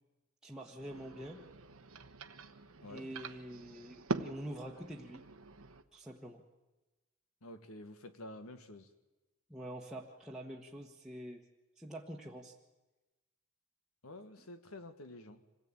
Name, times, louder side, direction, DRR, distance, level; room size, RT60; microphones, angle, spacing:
voice 1, 0.4-1.4 2.9-5.2 5.9-6.4 9.5-11.4 11.8-12.5, right 1 dB, 5° right, -4 dB, 1.3 m, -46 dB
sound 1, 0.8-5.8, right 2 dB, 90° right, 1.1 m, -44 dB
voice 2, 7.4-8.9 14.0-15.4, left 1 dB, 85° left, 9 dB, 1.6 m, -49 dB
26.0 x 17.0 x 8.9 m, 1.1 s
head